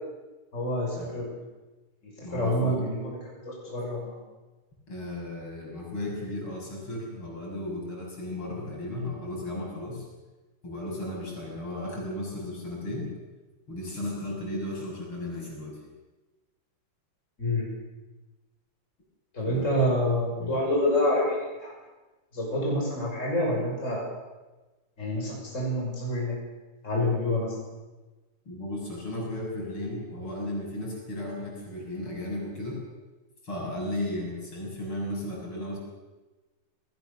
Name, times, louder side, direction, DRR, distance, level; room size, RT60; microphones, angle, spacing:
voice 1, 0.5-1.3 2.0-3.2 3.4-4.2 17.4-17.7 19.3-21.7 22.3-24.0 25.0-26.4 26.8-27.6, left 1 dB, 30° left, -2 dB, 6.2 m, -27 dB
voice 2, 2.2-2.9 4.9-10.1 10.6-13.1 13.7-15.8 19.4-19.8 20.4-20.6 28.5-32.8 33.4-35.8, left 1 dB, 70° left, -2 dB, 7.5 m, -35 dB
28.0 x 19.0 x 6.9 m, 1.2 s
omnidirectional pair, 2.4 m